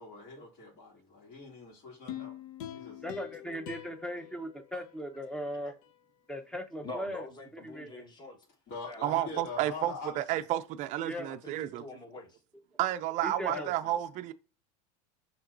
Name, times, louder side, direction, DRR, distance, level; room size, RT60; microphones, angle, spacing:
voice 1, 0.0-2.3 2.7-3.0 8.7-10.4 13.5-13.9, left 4 dB, 55° left, 2.3 m, -43 dB
sound 1, 2.1-5.4 5.8-5.9, left 11 dB, 70° left, 0.7 m, -44 dB
voice 2, 3.0-5.7 6.3-7.2 7.6-8.0 11.0-11.3 13.2-13.7, equal, 5° left, 0.7 m, -38 dB
voice 3, 6.8-8.4 8.9-9.4 11.2-12.4, left 2 dB, 25° left, 1.3 m, -45 dB
voice 4, 9.0-11.8 12.8-14.3, right 13 dB, 40° right, 0.4 m, -31 dB
5.8 x 2.9 x 2.5 m
supercardioid pair, 110°, 18 cm